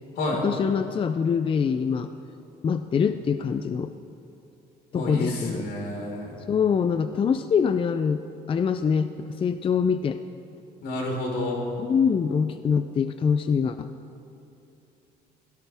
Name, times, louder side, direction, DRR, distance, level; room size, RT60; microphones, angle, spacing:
voice 1, 0.4-2.1 2.6-3.9 4.9-5.7 6.5-10.2 11.8-13.9, left 6 dB, 30° left, 10 dB, 0.5 m, -24 dB
voice 2, 4.9-6.4 10.8-11.6, left 1 dB, 75° left, -1 dB, 4.6 m, -29 dB
23.0 x 17.5 x 3.5 m, 2.8 s
cardioid pair, 110°, 17 cm